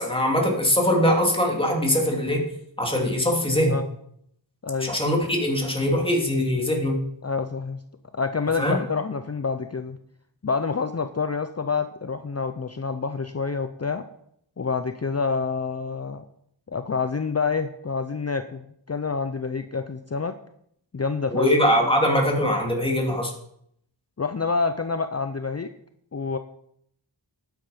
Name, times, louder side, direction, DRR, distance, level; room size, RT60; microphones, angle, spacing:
voice 1, 0.0-2.4 2.8-3.8 4.8-7.0 8.6-8.8 21.3-23.3, equal, 10° left, 0 dB, 2.8 m, -22 dB
voice 2, 4.6-4.9 7.2-7.8 8.1-10.0 10.4-14.0 14.6-16.2 16.7-20.4 20.9-21.5 24.2-25.7 26.1-26.4, left 4 dB, 35° left, 9 dB, 0.7 m, -27 dB
11.5 x 9.6 x 5.1 m, 0.71 s
wide cardioid pair, 45°, 44 cm